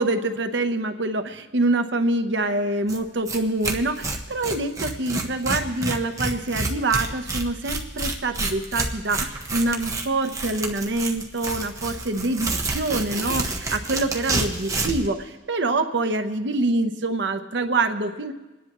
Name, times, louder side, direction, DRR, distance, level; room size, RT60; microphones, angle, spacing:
voice 1, 0.0-18.3, right 2 dB, 65° right, 7 dB, 0.8 m, -25 dB
Tearing, 2.9-3.0 3.3-3.4 3.6-15.1, right 2 dB, 15° right, 1.0 m, -28 dB
28.5 x 10.5 x 3.0 m, 1.2 s
head